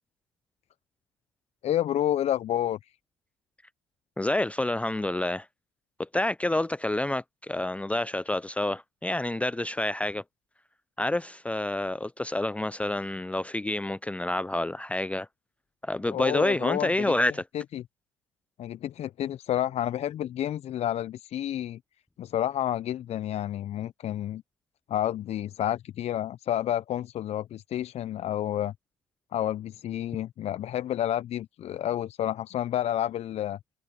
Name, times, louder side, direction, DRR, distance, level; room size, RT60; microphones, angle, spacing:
voice 1, 1.6-2.9 16.1-17.1 17.5-17.8 18.6-21.8 22.2-24.4 24.9-28.7 29.3-33.6, left 11 dB, 50° left, 1.0 m, -30 dB
voice 2, 4.2-5.5 6.0-10.2 11.0-15.3 15.8-17.4, left 1 dB, 10° left, 0.7 m, -28 dB
hypercardioid pair, 60°, 14 cm